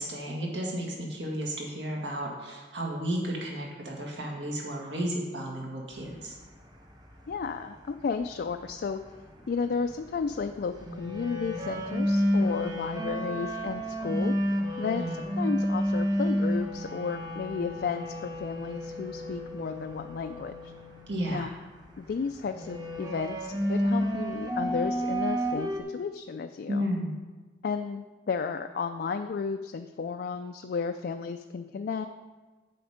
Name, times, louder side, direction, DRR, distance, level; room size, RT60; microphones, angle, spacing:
voice 1, 0.0-6.4 14.8-15.2 21.1-21.5 26.7-27.1, equal, 75° right, -1 dB, 1.9 m, -33 dB
sound 1, 5.9-25.8, equal, 20° right, 0.9 m, -31 dB
voice 2, 7.3-9.0 9.5-20.7 21.3-21.5 22.0-26.9 27.6-32.1, left 5 dB, 55° left, 7 dB, 0.3 m, -33 dB
7.7 x 7.1 x 5.0 m, 1.3 s
head